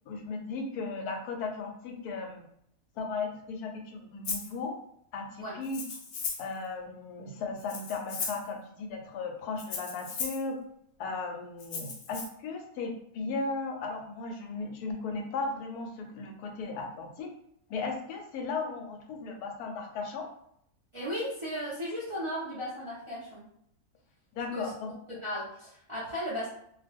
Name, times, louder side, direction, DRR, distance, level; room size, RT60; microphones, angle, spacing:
voice 1, 0.1-2.4 3.0-4.8 5.1-5.8 6.4-10.6 11.0-17.3 17.7-20.3 24.3-24.9, left 4 dB, 80° left, 3 dB, 1.1 m, -36 dB
Rattle (instrument), 4.2-4.5 5.6-6.5 7.6-8.5 9.6-10.4 11.6-12.2, left 4 dB, 65° left, 0.8 m, -36 dB
voice 2, 20.9-23.5 24.5-24.7 25.1-26.5, equal, 30° right, -8 dB, 0.5 m, -35 dB
2.5 x 2.2 x 3.4 m, 0.70 s
omnidirectional pair, 1.6 m